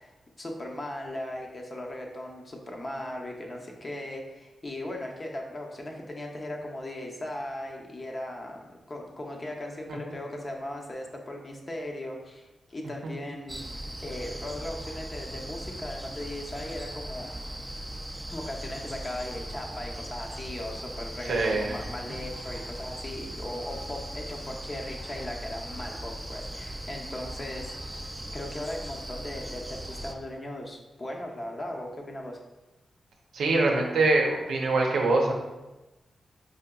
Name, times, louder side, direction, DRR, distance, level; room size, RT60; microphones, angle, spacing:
voice 1, 0.0-8.6 8.9-17.3 18.3-27.8 28.3-32.4, left 1 dB, 40° left, 1 dB, 0.7 m, -38 dB
sound 1, 13.5-30.1, right 1 dB, 15° right, 0.4 m, -39 dB
voice 2, 21.3-21.8 33.3-35.3, right 2 dB, 90° right, 0 dB, 0.6 m, -24 dB
4.8 x 2.7 x 2.3 m, 1.1 s
cardioid pair, 65°, 0 cm